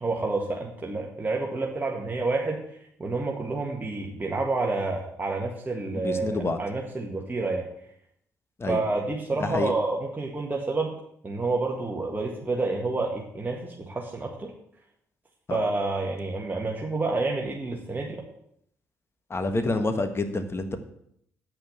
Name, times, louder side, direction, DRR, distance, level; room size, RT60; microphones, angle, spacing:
voice 1, 0.0-2.6 3.0-7.7 8.7-10.9 11.2-14.5 15.5-18.2, right 3 dB, 25° right, -2 dB, 1.8 m, -29 dB
voice 2, 5.9-6.6 8.6-8.8 9.4-9.7 15.5-15.6 19.3-20.8, left 2 dB, 35° left, 8 dB, 1.5 m, -27 dB
8.8 x 5.5 x 8.1 m, 0.71 s
hypercardioid pair, 50°, 8 cm